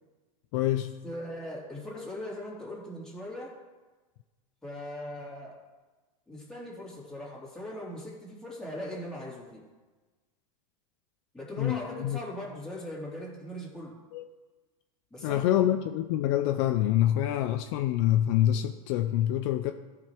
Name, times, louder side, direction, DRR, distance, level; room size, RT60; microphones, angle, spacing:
voice 1, 0.5-0.9 11.6-12.2 14.1-14.2 15.2-19.7, left 12 dB, 55° left, 7 dB, 0.5 m, -26 dB
voice 2, 1.0-3.6 4.6-5.5 6.3-9.7 11.3-13.9 15.1-15.4, left 1 dB, 5° left, -5 dB, 2.6 m, -40 dB
14.5 x 5.2 x 4.5 m, 1.3 s
supercardioid pair, 145°, 18 cm